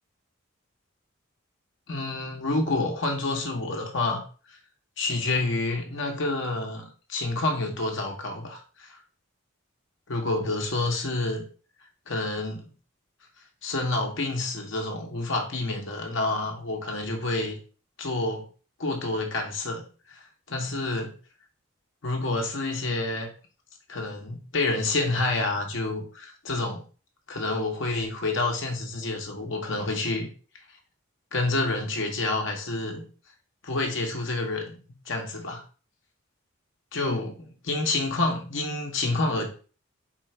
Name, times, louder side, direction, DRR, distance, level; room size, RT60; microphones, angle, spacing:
voice 1, 1.9-4.2 5.0-8.9 10.1-11.5 12.1-12.7 13.6-17.6 18.0-18.5 18.8-20.2 20.5-21.1 22.0-23.3 23.9-26.8 27.3-30.3 31.3-33.1 33.6-34.8 35.1-35.6 36.9-39.5, left 2 dB, 60° left, 2 dB, 1.1 m, -28 dB
4.4 x 2.5 x 4.3 m, 0.37 s
head